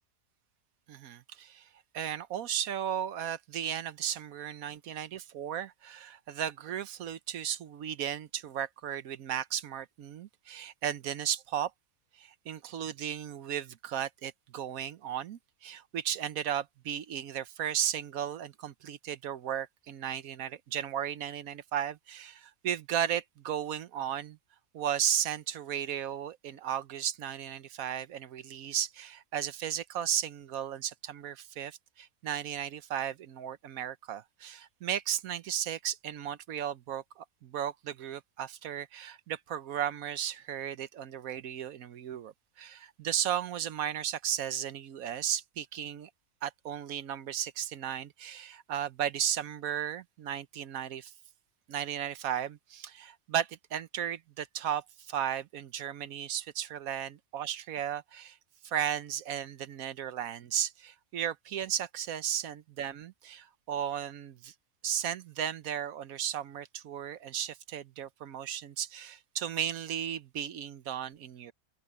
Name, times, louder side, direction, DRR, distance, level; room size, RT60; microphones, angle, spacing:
voice 1, 0.9-1.7 1.9-11.7 12.2-24.4 24.7-46.1 46.4-51.1 51.7-58.4 58.6-64.5 64.8-71.5, right 10 dB, 80° right, 1.2 m, -35 dB
omnidirectional pair, 1.5 m